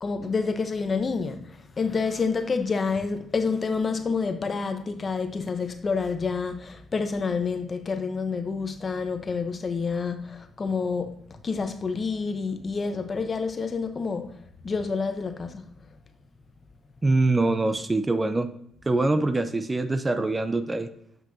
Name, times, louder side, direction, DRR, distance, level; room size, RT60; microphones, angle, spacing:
voice 1, 0.0-11.2 11.4-14.4 14.6-15.7, left 4 dB, 35° left, 0.8 m, -28 dB
voice 2, 17.0-18.5 18.9-20.9, right 2 dB, 20° right, 0.5 m, -24 dB
7.5 x 6.2 x 2.7 m
cardioid pair, 90°, 0 cm